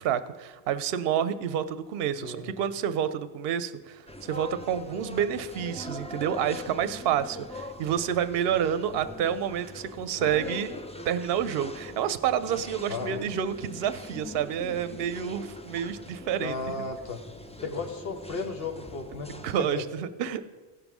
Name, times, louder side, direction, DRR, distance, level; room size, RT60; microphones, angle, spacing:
voice 1, 0.0-10.7 11.0-16.6 19.4-20.4, right 9 dB, 70° right, 13 dB, 0.8 m, -29 dB
sound 1, 4.1-19.6, left 2 dB, 10° left, 0.3 m, -42 dB
voice 2, 16.4-17.2 17.6-19.3 19.6-19.8, left 4 dB, 65° left, 6 dB, 1.2 m, -34 dB
15.0 x 5.3 x 6.0 m, 1.3 s
omnidirectional pair, 1.1 m